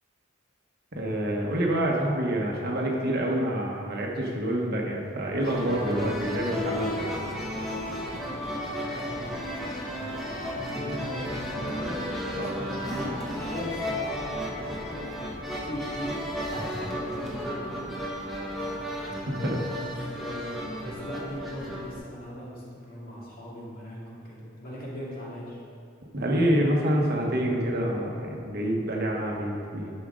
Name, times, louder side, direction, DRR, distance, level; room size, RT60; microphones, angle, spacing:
voice 1, 0.9-7.1 12.4-12.6 16.5-16.6 19.1-19.6 26.1-29.9, right 1 dB, 50° right, -1 dB, 1.2 m, -27 dB
sound 1, 5.4-13.8, left 2 dB, 90° left, 0.8 m, -46 dB
sound 2, 5.4-22.0, equal, ahead, 1.3 m, -34 dB
voice 2, 8.0-9.3 9.6-16.2 16.5-18.9 19.7-25.6, equal, 45° left, -6 dB, 2.2 m, -40 dB
11.0 x 6.2 x 3.8 m, 2.5 s
head